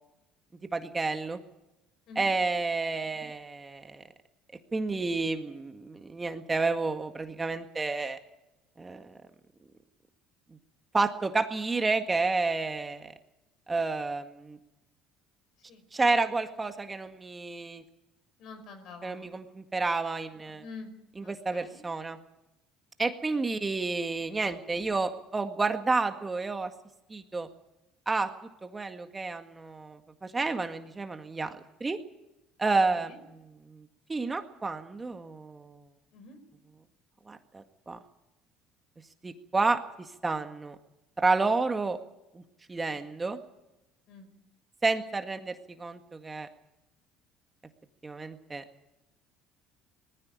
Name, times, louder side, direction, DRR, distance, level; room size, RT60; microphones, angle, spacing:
voice 1, 0.7-1.4 2.2-4.0 4.7-8.2 8.8-9.2 10.9-13.1 13.7-14.6 15.9-17.8 19.0-20.6 21.2-22.2 23.0-26.7 27.1-27.5 28.1-28.3 28.6-32.0 32.6-33.4 33.7-35.8 37.3-38.0 39.2-40.8 41.2-42.0 42.3-42.4 42.7-43.4 44.8-46.5 48.0-48.6, right 3 dB, 20° right, 7 dB, 1.8 m, -30 dB
voice 2, 18.4-19.6 20.6-20.9 21.2-21.8 32.9-33.2 36.1-36.4 42.9-43.0 44.1-44.3, left 4 dB, 65° left, 9 dB, 4.9 m, -47 dB
19.5 x 15.5 x 9.8 m, 0.92 s
supercardioid pair, 85°, 0 cm